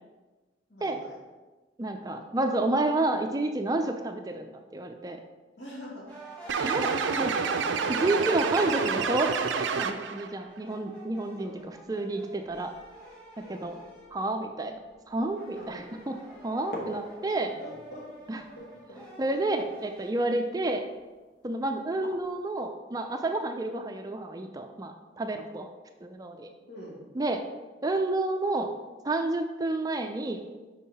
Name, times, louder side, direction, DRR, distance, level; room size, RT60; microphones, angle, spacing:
voice 1, 0.7-1.1 2.1-2.2 5.6-6.1 8.2-8.3 11.4-11.6 13.5-13.7 15.5-15.8 17.6-18.0 18.6-19.0 19.3-19.7 26.7-27.0, equal, 75° left, -4 dB, 2.1 m, -45 dB
voice 2, 1.8-5.2 6.6-7.4 7.9-9.3 9.8-12.7 13.4-13.7 14.1-14.8 15.1-16.2 16.4-17.5 18.3-18.4 19.2-20.8 21.4-25.7 26.0-26.5 27.1-27.4 27.8-28.7 29.0-30.4, right 2 dB, 20° right, 5 dB, 0.4 m, -30 dB
sound 1, 6.1-14.2 14.6-20.1, right 2 dB, 5° left, 1.6 m, -46 dB
sound 2, 6.5-10.3, right 5 dB, 90° right, 0.5 m, -28 dB
sound 3, 15.4-15.5 16.0-16.1 16.6-22.5, left 1 dB, 50° left, 1.1 m, -46 dB
5.6 x 5.4 x 4.1 m, 1.2 s
head